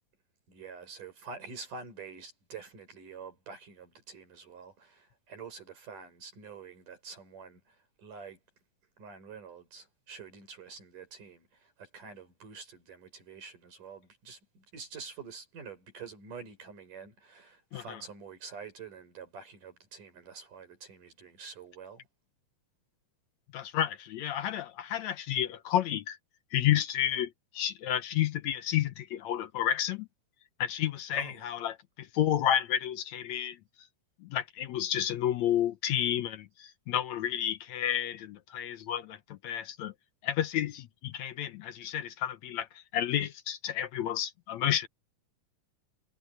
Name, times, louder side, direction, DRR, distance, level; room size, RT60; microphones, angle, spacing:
voice 1, 0.5-8.4 9.0-22.0 31.1-31.5, right 5 dB, 85° right, 7.6 m, -47 dB
voice 2, 23.5-26.2 26.5-30.1 30.6-33.6 34.2-39.9 40.2-44.9, left 11 dB, 70° left, 2.0 m, -31 dB
omnidirectional pair, 3.6 m